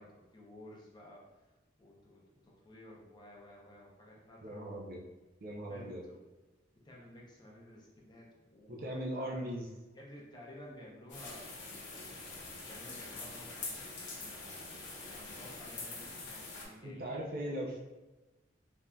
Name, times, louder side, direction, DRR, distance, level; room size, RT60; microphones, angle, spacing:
voice 1, 0.0-1.5 1.8-4.7 5.5-6.2 6.8-9.5 9.9-11.5 12.3-17.2, left 1 dB, 25° left, -3 dB, 0.5 m, -54 dB
voice 2, 4.4-5.0 5.4-6.0 8.7-9.7 16.8-17.8, right 1 dB, 50° right, -1 dB, 0.5 m, -39 dB
sound 1, 11.1-16.6, left 3 dB, 75° left, 0.8 m, -45 dB
3.4 x 2.6 x 2.2 m, 1.1 s
head